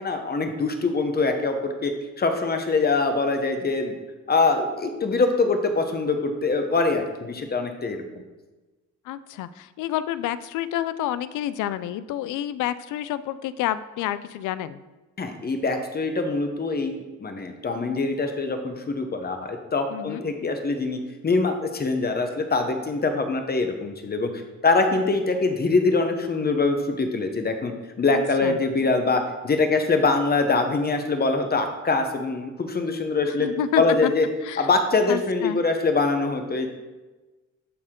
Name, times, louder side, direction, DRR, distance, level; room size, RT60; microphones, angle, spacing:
voice 1, 0.0-4.0 4.3-8.0 15.2-24.3 24.6-33.5 33.8-34.3 34.6-36.7, left 3 dB, 30° left, 5 dB, 1.0 m, -24 dB
voice 2, 9.1-14.8 19.9-20.2 28.1-28.6 33.4-34.1 34.4-34.7 35.1-35.6, left 12 dB, 80° left, 15 dB, 0.5 m, -29 dB
11.0 x 4.3 x 3.8 m, 1.2 s
cardioid pair, 90°, 30 cm